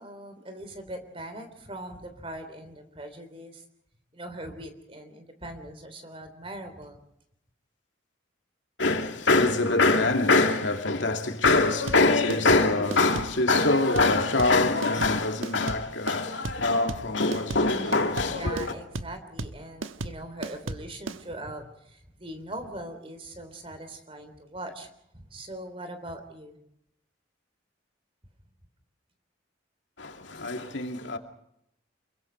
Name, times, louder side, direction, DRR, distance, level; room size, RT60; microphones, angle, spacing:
voice 1, 0.0-3.6 4.1-7.0 17.6-26.6, right 1 dB, 30° right, 3.5 m, -41 dB
voice 2, 8.8-18.7 30.0-31.2, left 3 dB, 70° left, 2.5 m, -23 dB
sound 1, 11.4-21.2, right 2 dB, 90° right, 1.2 m, -35 dB
28.0 x 23.0 x 4.6 m
head